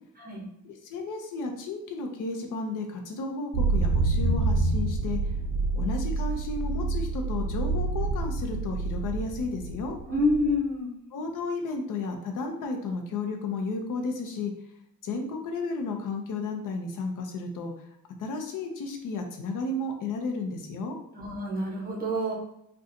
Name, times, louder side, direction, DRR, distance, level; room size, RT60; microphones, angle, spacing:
voice 1, 0.6-5.2 5.7-10.0 11.1-14.5 15.0-17.7 18.2-21.0, left 3 dB, 70° left, 3 dB, 0.6 m, -33 dB
sound 1, 3.5-10.6, right 3 dB, 60° right, 0.5 m, -27 dB
voice 2, 10.1-10.9 21.1-22.3, left 1 dB, 25° right, -2 dB, 0.9 m, -27 dB
3.8 x 2.3 x 2.6 m, 0.78 s
cardioid pair, 150°, 33 cm